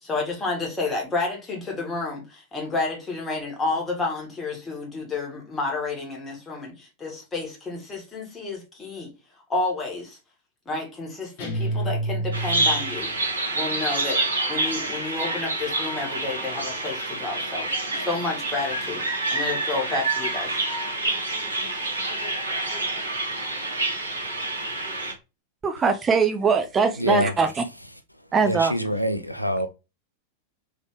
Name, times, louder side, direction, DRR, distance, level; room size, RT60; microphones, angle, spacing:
voice 1, 0.0-9.1 9.5-10.2 10.7-13.1 13.5-14.2 14.5-17.7 17.9-20.6, left 3 dB, 15° left, 1.8 m, -30 dB
sound 1, 11.4-13.1, right 2 dB, 50° left, 1.4 m, -28 dB
Bird vocalization bird call bird song, 12.3-25.1, right 2 dB, 75° right, 1.3 m, -27 dB
voice 2, 25.6-27.6 28.3-28.7, right 5 dB, 20° right, 0.5 m, -21 dB
voice 3, 27.0-27.3 28.4-29.7, equal, 90° left, 0.4 m, -25 dB
3.7 x 3.4 x 3.2 m
figure-of-eight pair, 90°, 0 cm